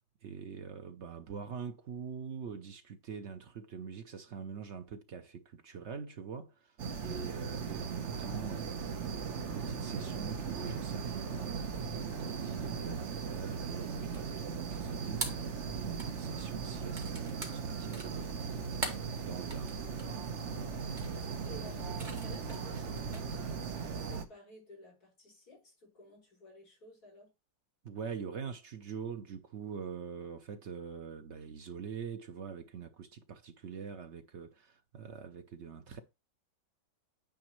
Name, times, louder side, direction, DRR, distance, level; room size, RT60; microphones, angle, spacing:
voice 1, 0.2-15.4 15.7-18.7 19.2-19.8 20.4-20.7 27.8-36.0, right 6 dB, 65° right, 0.7 m, -44 dB
sound 1, 6.8-24.3, right 5 dB, 50° right, 1.0 m, -38 dB
sound 2, 12.9-23.4, right 2 dB, 25° right, 1.7 m, -44 dB
voice 2, 20.5-21.0 21.4-27.3, left 1 dB, 50° left, 5.5 m, -54 dB
9.5 x 5.0 x 3.1 m
omnidirectional pair, 2.0 m